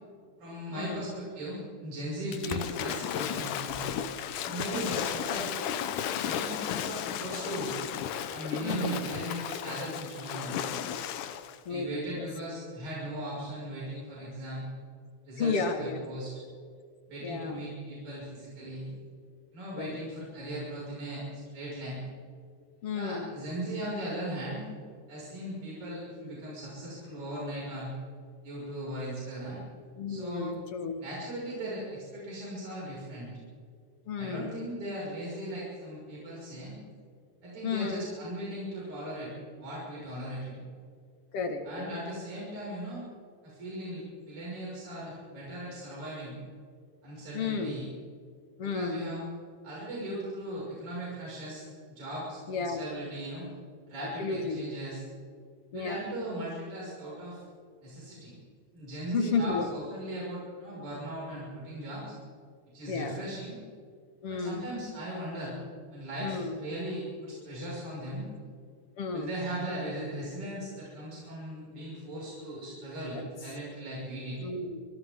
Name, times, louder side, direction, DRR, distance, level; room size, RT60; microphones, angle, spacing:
voice 1, 0.4-3.9 4.4-5.5 6.2-7.7 8.3-10.8 11.7-14.7 15.3-16.3 17.1-18.9 19.5-22.0 22.9-24.7 25.1-27.9 28.4-29.6 30.1-30.5 31.0-33.3 34.2-36.8 37.4-39.3 39.6-40.6 41.6-43.0 43.4-46.4 47.0-47.9 48.6-49.2 49.6-53.5 53.9-55.0 55.7-57.4 57.8-58.3 58.7-62.1 62.7-63.6 64.3-65.6 65.9-68.3 69.1-74.5, right 1 dB, 70° right, -7 dB, 7.6 m, -38 dB
Waves surf / Splash splatter, 2.3-11.6, left 9 dB, 90° left, 2.5 m, -34 dB
voice 2, 8.6-9.0 11.7-12.3 15.4-16.1 17.2-17.6 19.8-19.9 22.8-23.3 30.0-30.9 34.1-34.5 37.6-38.1 41.3-41.9 47.3-47.8 48.6-49.0 52.5-52.8 54.2-54.6 55.7-56.0 59.1-59.7 62.9-63.2 64.2-64.6 66.2-66.5 69.0-69.3 73.1-73.3 74.4-74.8, left 4 dB, 50° left, 5 dB, 2.5 m, -32 dB
28.0 x 24.5 x 3.8 m, 2.2 s
omnidirectional pair, 3.5 m